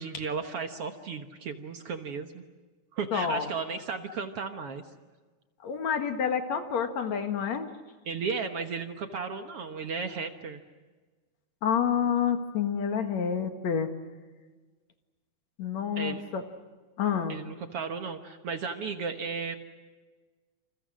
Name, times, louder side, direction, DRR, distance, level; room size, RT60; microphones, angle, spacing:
voice 1, 0.0-2.4 2.9-4.8 8.1-10.6 16.0-16.2 17.3-19.6, right 5 dB, 55° right, 6 dB, 1.9 m, -34 dB
voice 2, 3.1-3.5 5.6-7.7 11.6-13.9 15.6-16.4 17.0-17.4, left 7 dB, 65° left, 6 dB, 2.8 m, -28 dB
28.5 x 28.0 x 6.3 m, 1.3 s
omnidirectional pair, 3.6 m